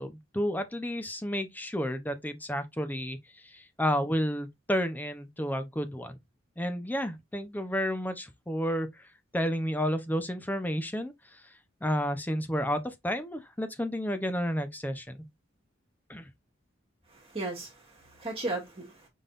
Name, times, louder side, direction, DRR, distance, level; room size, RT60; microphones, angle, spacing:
voice 1, 0.0-6.2 6.6-9.0 9.3-11.4 11.8-15.2 16.1-16.3, equal, 10° left, 0.7 m, -31 dB
voice 2, 17.1-19.1, right 2 dB, 30° right, 1.8 m, -36 dB
5.3 x 3.9 x 2.5 m
head